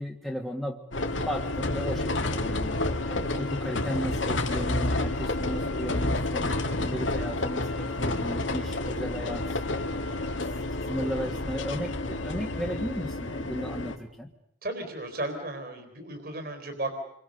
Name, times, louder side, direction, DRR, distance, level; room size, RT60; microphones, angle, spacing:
voice 1, 0.0-10.4 10.9-14.3, equal, ahead, 1 dB, 1.7 m, -35 dB
sound 1, 0.9-14.0, left 2 dB, 75° left, 2.3 m, -30 dB
voice 2, 10.0-10.3 14.6-17.0, right 1 dB, 50° right, 6 dB, 4.2 m, -35 dB
29.0 x 24.0 x 6.6 m, 0.75 s
head